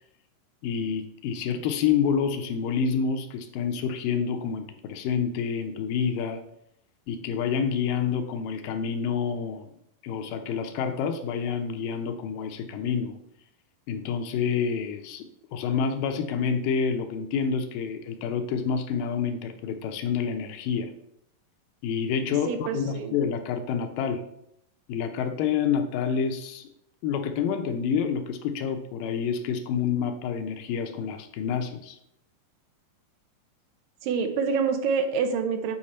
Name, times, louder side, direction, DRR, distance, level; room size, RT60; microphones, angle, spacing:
voice 1, 0.6-6.4 7.1-9.7 10.0-13.2 13.9-15.3 15.5-20.9 21.8-24.2 24.9-26.7 27.0-32.0, left 6 dB, 80° left, 6 dB, 2.3 m, -28 dB
voice 2, 22.5-23.2 34.0-35.8, right 5 dB, 85° right, 6 dB, 2.6 m, -26 dB
8.7 x 4.7 x 4.2 m, 0.77 s
omnidirectional pair, 4.0 m